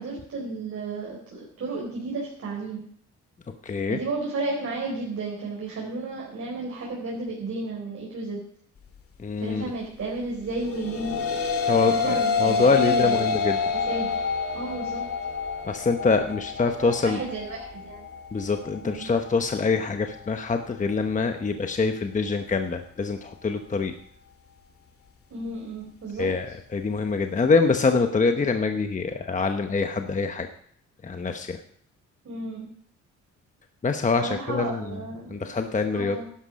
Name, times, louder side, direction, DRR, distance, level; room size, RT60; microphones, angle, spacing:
voice 1, 0.0-2.8 3.9-8.4 9.4-11.2 11.9-13.2 13.9-14.1 14.5-15.0 16.8-18.1 18.8-19.1 25.3-26.3 32.2-32.7 34.2-35.5 35.9-36.2, right 3 dB, 50° right, -3 dB, 4.4 m, -32 dB
voice 2, 3.6-4.0 9.2-9.6 11.7-13.6 15.6-17.2 18.3-23.9 26.2-30.5 31.0-31.6 33.8-35.0 35.3-36.2, left 4 dB, 25° left, 6 dB, 1.0 m, -25 dB
sound 1, 10.6-19.8, left 5 dB, 50° left, 2.0 m, -28 dB
11.5 x 11.0 x 5.2 m, 0.64 s
cardioid pair, 90°, 30 cm